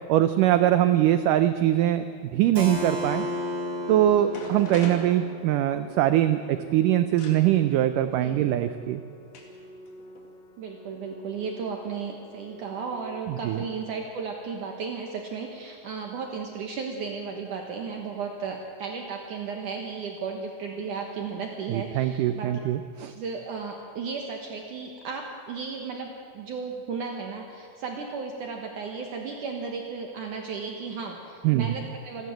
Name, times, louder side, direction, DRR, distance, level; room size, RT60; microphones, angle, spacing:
voice 1, 0.1-2.0 2.3-3.2 3.9-9.0 13.3-13.6 21.7-23.1 31.4-31.8, right 12 dB, 85° right, 10 dB, 1.8 m, -22 dB
Keyboard (musical), 2.5-8.1, left 1 dB, 30° right, 3.1 m, -35 dB
Organ, 3.3-14.3, left 1 dB, 85° left, 4.2 m, -49 dB
sound 1, 4.3-5.9 7.2-7.4 8.5-8.6 9.3-9.6 9.9-10.3, left 2 dB, 55° left, 3.7 m, -40 dB
voice 2, 8.2-8.5 10.6-22.6 23.1-32.3, right 5 dB, 65° right, 2 dB, 2.5 m, -35 dB
28.0 x 12.5 x 7.7 m, 2.3 s
omnidirectional pair, 4.5 m